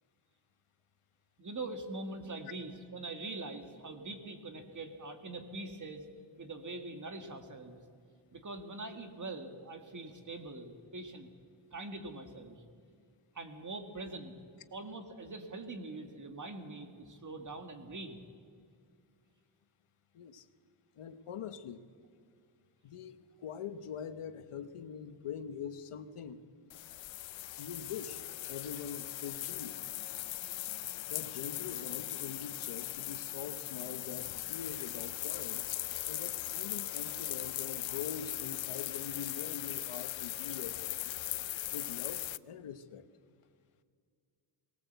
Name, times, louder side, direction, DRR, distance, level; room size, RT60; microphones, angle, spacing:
voice 1, 1.4-6.0 6.4-7.8 8.3-11.3 11.7-12.6 13.3-14.3 14.7-18.2 36.7-37.1, right 2 dB, 35° right, 6 dB, 1.9 m, -43 dB
voice 2, 20.1-20.5 21.0-21.8 22.8-26.4 27.6-28.2 28.5-29.8 31.1-35.7 36.1-41.1 41.7-43.1, left 7 dB, 85° left, 11 dB, 1.1 m, -44 dB
sound 1, 26.7-42.4, left 14 dB, 65° left, 0.5 m, -39 dB
19.5 x 19.0 x 8.0 m, 2.2 s
wide cardioid pair, 140°, 50 cm